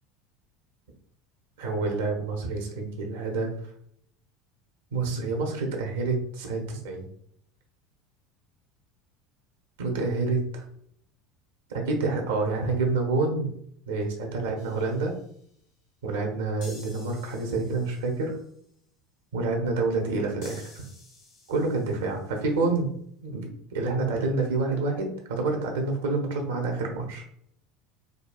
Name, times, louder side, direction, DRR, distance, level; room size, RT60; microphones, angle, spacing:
voice 1, 1.6-3.5 4.9-7.1 9.8-10.6 11.7-13.5 13.9-15.2 16.0-18.4 19.3-20.8 21.5-22.9 23.2-27.2, right 3 dB, 70° right, 2 dB, 0.8 m, -28 dB
sound 1, 14.6-15.5 16.6-18.5 20.4-22.3, left 2 dB, 60° left, 1.2 m, -51 dB
5.0 x 2.3 x 2.3 m, 0.67 s
figure-of-eight pair, 75°, 0 cm